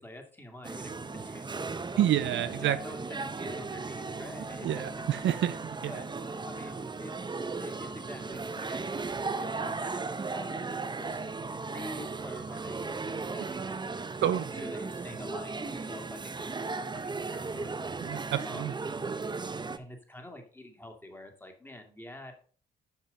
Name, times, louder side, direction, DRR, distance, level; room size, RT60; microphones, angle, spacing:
voice 1, 0.0-1.8 2.6-4.8 5.9-6.1 6.4-11.2 11.7-12.9 13.3-17.7 18.4-18.7 19.8-22.3, left 1 dB, 10° left, 4 dB, 2.2 m, -47 dB
sound 1, 0.6-19.8, right 4 dB, 20° right, 0.8 m, -36 dB
voice 2, 2.0-2.8 4.6-6.0 14.2-14.5 18.0-18.7 19.0-19.1, right 11 dB, 70° right, 12 dB, 0.6 m, -29 dB
7.5 x 5.5 x 5.3 m, 0.41 s
cardioid pair, 90°, 20 cm